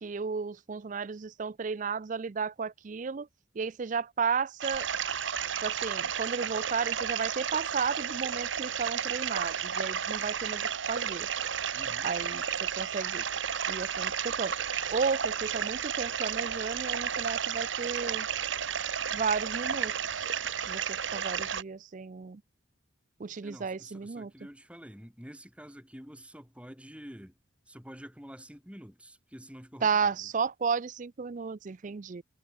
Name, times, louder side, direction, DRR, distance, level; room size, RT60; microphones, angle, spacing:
voice 1, 0.0-3.3 3.6-4.9 5.6-11.3 12.0-12.4 12.8-13.2 13.7-14.5 14.9-18.3 19.1-20.3 20.7-22.4 23.2-24.3 29.8-32.2, right 5 dB, 40° right, 0.4 m, -33 dB
sound 1, 4.6-21.6, right 8 dB, 70° right, 1.1 m, -32 dB
voice 2, 11.7-12.1 23.4-27.4 27.7-30.3, equal, 5° right, 6.3 m, -48 dB
head